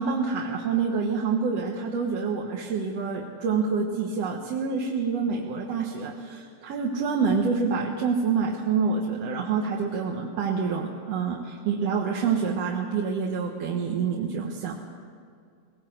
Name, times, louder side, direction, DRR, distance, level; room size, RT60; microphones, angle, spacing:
voice 1, 0.0-14.7, right 5 dB, 60° right, 0 dB, 2.3 m, -27 dB
20.0 x 18.0 x 7.8 m, 2.3 s
omnidirectional pair, 3.5 m